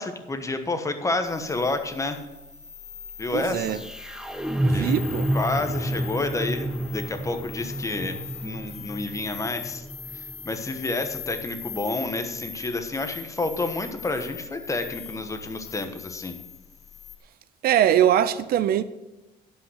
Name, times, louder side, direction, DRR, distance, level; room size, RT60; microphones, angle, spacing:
voice 1, 0.0-2.2 3.2-3.8 4.7-4.9 5.3-9.8 10.1-16.4, left 2 dB, 20° left, 1.2 m, -29 dB
sound 1, 1.2-17.2, left 8 dB, 40° left, 1.2 m, -40 dB
sound 2, 2.3-12.3, right 1 dB, 5° right, 0.8 m, -31 dB
voice 2, 3.3-3.8 4.6-5.3 17.6-18.8, right 11 dB, 65° right, 0.6 m, -22 dB
11.0 x 5.6 x 6.4 m
cardioid pair, 110°, 17 cm